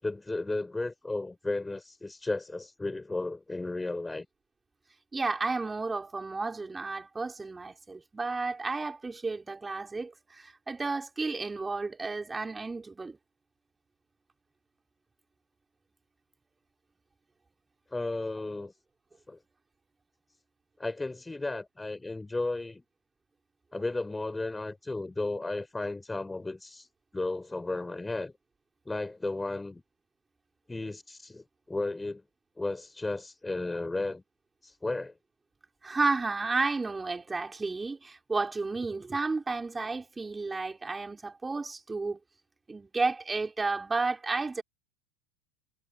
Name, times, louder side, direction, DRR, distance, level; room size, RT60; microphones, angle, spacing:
voice 1, 0.0-4.3 17.9-18.7 19.3-19.4 20.8-22.8 23.7-26.9 27.1-28.3 28.9-29.8 30.7-32.2 32.6-34.2 34.6-35.1, left 2 dB, 10° left, 7.3 m, -34 dB
voice 2, 5.1-13.2 35.8-42.2 42.7-44.6, right 3 dB, 15° right, 5.8 m, -32 dB
hypercardioid pair, 85°, 0 cm